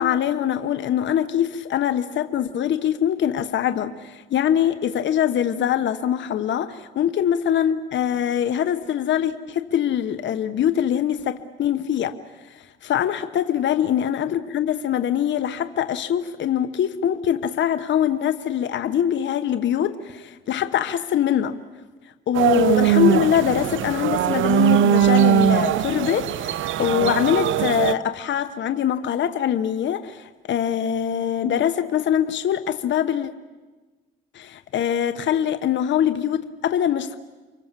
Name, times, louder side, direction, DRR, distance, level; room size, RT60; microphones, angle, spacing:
voice 1, 0.0-12.2 12.5-21.6 22.3-33.3 34.3-37.2, left 9 dB, 65° left, 10 dB, 1.2 m, -23 dB
sound 1, 22.3-27.9, right 10 dB, 75° right, 0.9 m, -20 dB
29.5 x 24.0 x 7.6 m, 1.3 s
cardioid pair, 90°, 20 cm